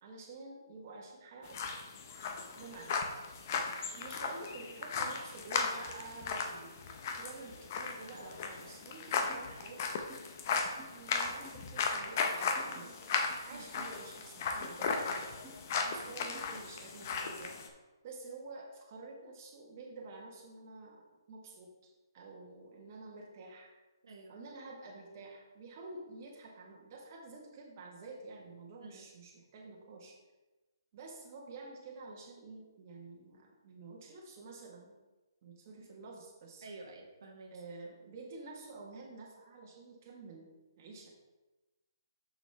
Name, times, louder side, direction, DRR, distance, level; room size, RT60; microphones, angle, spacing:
voice 1, 0.0-1.6 2.6-3.0 3.9-6.8 7.1-9.9 10.7-15.3 15.8-17.5 18.0-21.0 21.3-23.7 24.3-30.2 30.9-35.0 35.4-36.7 37.5-40.5 40.8-41.1, right 3 dB, 35° right, -1 dB, 1.4 m, -49 dB
sound 1, 1.5-17.7, left 5 dB, 40° left, 0.7 m, -36 dB
sound 2, 9.3-9.5 10.1-10.2 10.8-10.9 11.4-11.6 12.6-12.8 13.8-13.9 14.6-14.8 15.4-15.6 16.3-16.5, right 2 dB, ahead, 2.2 m, -54 dB
voice 2, 36.6-37.6, right 3 dB, 70° right, 1 dB, 1.1 m, -50 dB
6.4 x 5.9 x 3.4 m, 1.2 s
hypercardioid pair, 160°, 2 cm